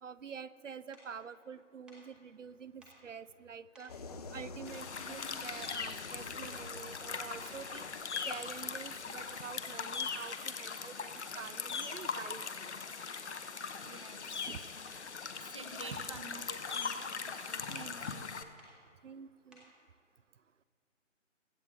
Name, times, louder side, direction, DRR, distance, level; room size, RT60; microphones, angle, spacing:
voice 1, 0.0-3.9 4.3-7.9 8.3-12.7 14.4-14.6 15.9-16.1 17.7-18.0 19.0-19.7, right 6 dB, 75° right, 17 dB, 0.6 m, -47 dB
sound 1, 0.9-1.1 1.9-2.1 2.8-3.0 3.7-4.0 4.7-5.3 5.6-6.0 6.5-6.9 7.4-9.0 9.3-9.5 10.2-10.5 11.2-11.4 11.9-12.4 13.0-13.2 14.0-14.2 14.9-15.1 15.8-16.1 16.5-16.9 17.7-17.9 18.6-18.8 19.5-19.8, equal, ahead, 0.9 m, -60 dB
sound 2, 3.9-10.5, left 4 dB, 30° left, 0.8 m, -49 dB
sound 3, 4.6-18.4, left 5 dB, 60° left, 1.0 m, -40 dB
voice 2, 13.8-14.4 15.4-18.3, right 3 dB, 25° right, 7 dB, 0.4 m, -50 dB
23.0 x 7.9 x 3.5 m, 2.4 s
figure-of-eight pair, 145°, 38 cm